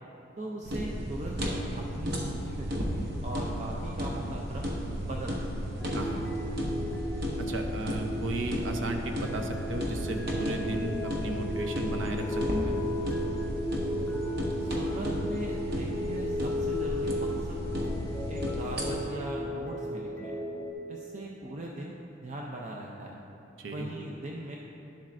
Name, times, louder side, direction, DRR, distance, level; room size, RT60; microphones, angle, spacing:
voice 1, 0.4-4.7 5.0-5.5 14.6-17.9 18.3-20.4 20.9-23.2 23.6-24.6, right 1 dB, 40° right, -2 dB, 0.5 m, -39 dB
sound 1, 0.6-19.0, equal, 55° right, 1.0 m, -34 dB
sound 2, 5.8-20.7, left 1 dB, 10° left, 0.6 m, -35 dB
voice 2, 5.9-6.3 7.4-12.7 23.6-23.9, right 1 dB, 85° right, 4 dB, 0.7 m, -34 dB
11.0 x 7.3 x 2.5 m, 3.0 s
head